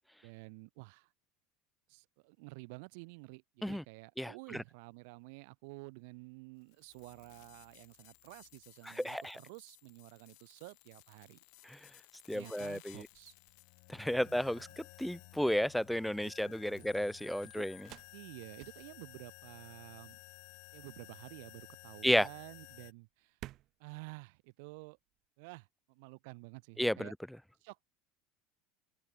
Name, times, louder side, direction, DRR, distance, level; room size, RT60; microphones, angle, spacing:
voice 1, 0.2-1.1 1.9-11.4 11.9-12.0 12.3-13.4 14.1-14.8 16.2-17.1 17.6-17.7 18.1-20.2 20.7-23.5 23.8-25.0 25.4-27.1 27.6-27.8, right 29 dB, 75° right, 3.7 m, -51 dB
voice 2, 4.2-4.6 8.8-9.4 11.6-11.8 12.3-13.1 13.9-17.8 22.0-22.3 26.8-27.1, equal, ahead, 0.9 m, -33 dB
sound 1, 6.6-22.9, left 35 dB, 65° left, 2.7 m, -56 dB
sound 2, 11.4-25.3, right 15 dB, 45° right, 5.5 m, -59 dB
open air
cardioid pair, 150°, 0 cm